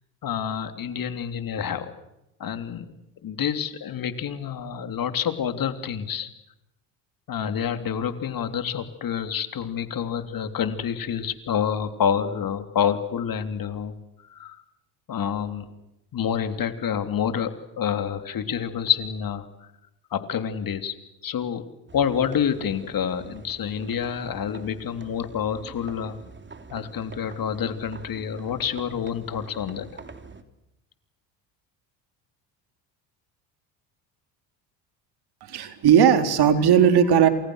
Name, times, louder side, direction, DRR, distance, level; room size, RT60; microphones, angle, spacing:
voice 1, 0.2-1.9 2.4-2.9 3.2-6.3 7.3-13.9 14.3-14.6 15.1-15.7 16.1-19.7 20.1-20.9 21.2-21.6 21.9-26.2 26.7-29.9, left 8 dB, 45° left, 9 dB, 3.3 m, -28 dB
sound 1, 21.9-30.4, right 4 dB, 25° right, 3.6 m, -45 dB
voice 2, 35.4-37.3, right 8 dB, 55° right, 8 dB, 4.1 m, -17 dB
30.0 x 27.5 x 6.5 m, 0.91 s
supercardioid pair, 90°, 46 cm